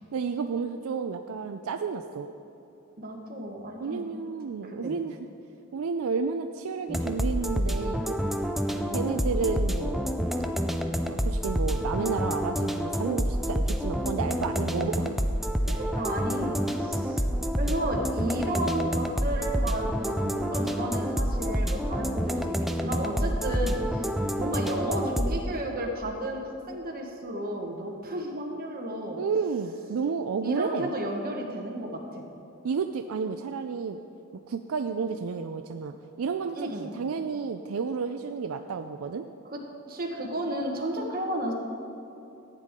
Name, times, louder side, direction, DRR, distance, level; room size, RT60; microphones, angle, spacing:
voice 1, 0.1-2.3 3.8-5.2 5.7-8.2 8.9-10.1 11.1-15.2 29.2-30.9 32.6-34.0 34.5-39.2, right 5 dB, 75° right, 7 dB, 0.4 m, -31 dB
voice 2, 3.0-4.1 4.6-4.9 8.7-9.2 15.7-17.3 17.6-24.1 24.4-29.2 30.4-32.2 36.5-36.9 39.5-39.6 39.9-41.5, right 1 dB, 45° right, 1 dB, 1.4 m, -33 dB
sound 1, 6.9-25.4, equal, ahead, 0.4 m, -28 dB
14.5 x 9.0 x 3.7 m, 3.0 s
head